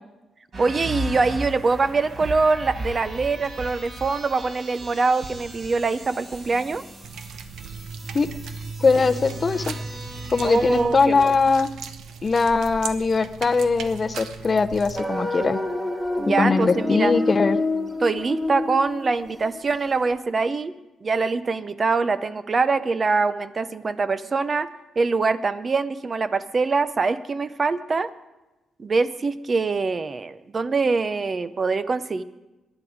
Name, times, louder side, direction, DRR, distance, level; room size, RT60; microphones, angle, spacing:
sound 1, 0.5-10.8, right 1 dB, 50° right, 4.6 m, -36 dB
voice 1, 0.6-6.8 10.4-11.4 16.2-17.1 18.0-20.7 21.0-24.7 25.0-28.1 28.8-32.2, right 4 dB, 35° right, 13 dB, 0.5 m, -23 dB
sound 2, 7.0-15.0, right 6 dB, 85° right, 0.9 m, -39 dB
voice 2, 8.8-9.7 10.3-11.7 12.2-15.6 16.4-17.6, left 4 dB, 30° left, 10 dB, 0.6 m, -21 dB
sound 3, 14.9-19.8, left 2 dB, 5° right, 1.9 m, -27 dB
18.5 x 11.0 x 4.9 m, 1.1 s
cardioid pair, 125°, 0 cm